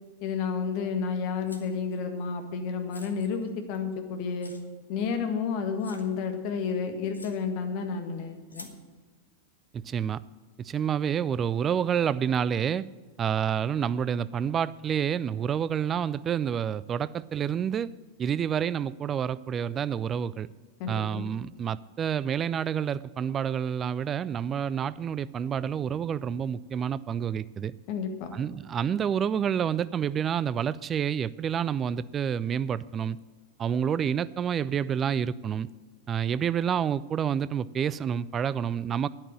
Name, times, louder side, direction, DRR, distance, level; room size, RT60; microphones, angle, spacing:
voice 1, 0.2-4.5 4.9-8.7 20.8-21.3 27.9-28.3, left 5 dB, 45° left, 6 dB, 1.7 m, -31 dB
sound 1, 1.5-2.0 2.9-3.9 4.4-4.6 5.3-5.4 5.8-6.1 6.7-6.8 7.1-7.4 8.5-8.8, left 2 dB, 80° left, 1.1 m, -48 dB
voice 2, 9.7-10.2 10.6-12.9 13.2-17.9 18.2-20.5 20.9-27.7 28.3-33.2 33.6-35.7 36.1-39.1, right 8 dB, 25° right, 18 dB, 0.4 m, -28 dB
10.0 x 8.7 x 7.7 m, 1.4 s
figure-of-eight pair, 90°, 0 cm